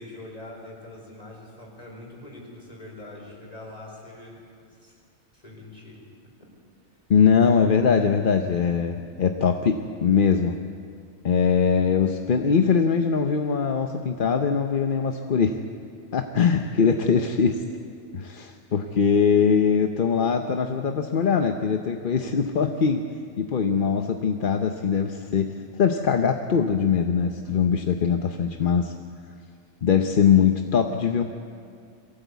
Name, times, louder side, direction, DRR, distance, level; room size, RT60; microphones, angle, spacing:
voice 1, 0.0-5.0 5.3-6.0 16.8-17.3, left 1 dB, 25° left, -2 dB, 4.8 m, -43 dB
voice 2, 7.1-10.5 11.2-15.6 16.1-17.5 18.1-23.0 23.4-25.5 25.8-28.9 29.8-31.2, left 6 dB, 45° left, 5 dB, 0.8 m, -22 dB
22.5 x 16.5 x 8.2 m, 2.2 s
omnidirectional pair, 1.4 m